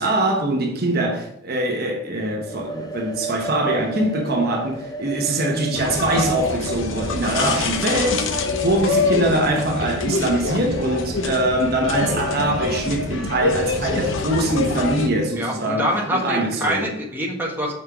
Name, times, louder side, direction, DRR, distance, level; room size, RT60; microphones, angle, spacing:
voice 1, 0.0-16.9, right 1 dB, 55° right, 1.2 m, -23 dB
sound 1, 2.4-10.1, right 3 dB, 20° left, 0.6 m, -35 dB
sound 2, 5.8-15.1, left 3 dB, 75° left, 0.8 m, -25 dB
voice 2, 15.4-17.7, equal, 10° right, 1.4 m, -25 dB
5.7 x 5.5 x 4.8 m
head